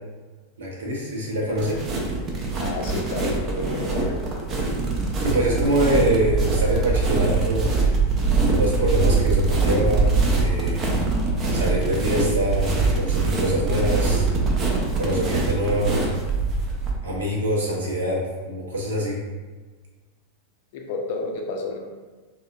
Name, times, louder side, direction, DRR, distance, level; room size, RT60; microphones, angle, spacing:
voice 1, 0.6-1.8 5.2-7.7 8.5-10.8 11.5-14.3 14.9-16.0 17.0-19.2, right 1 dB, 65° right, -3 dB, 0.7 m, -24 dB
sound 1, 1.5-16.9, right 3 dB, 30° right, 0.5 m, -23 dB
voice 2, 2.6-4.2 20.7-21.8, left 3 dB, 50° left, 2 dB, 0.4 m, -30 dB
3.5 x 2.2 x 2.3 m, 1.3 s
figure-of-eight pair, 90°, 0 cm